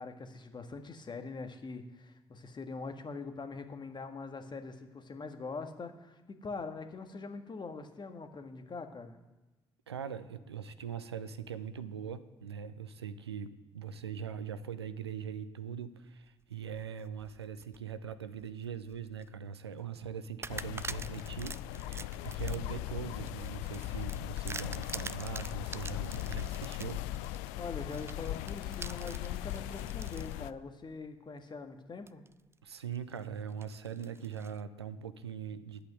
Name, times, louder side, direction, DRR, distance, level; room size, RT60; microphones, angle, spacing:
voice 1, 0.0-9.2 27.6-32.2, left 4 dB, 35° left, 6 dB, 1.6 m, -43 dB
voice 2, 9.9-27.0 32.6-35.9, right 7 dB, 85° right, 13 dB, 0.5 m, -41 dB
sound 1, 16.5-17.8 18.3-19.3 19.7-19.9 20.4-30.3 30.9-31.0 32.1-32.5 32.9-34.6, right 4 dB, 20° right, 0.5 m, -46 dB
sound 2, 20.5-30.5, left 15 dB, 65° left, 0.4 m, -39 dB
11.0 x 8.6 x 7.9 m, 1.1 s
figure-of-eight pair, 40°, 13 cm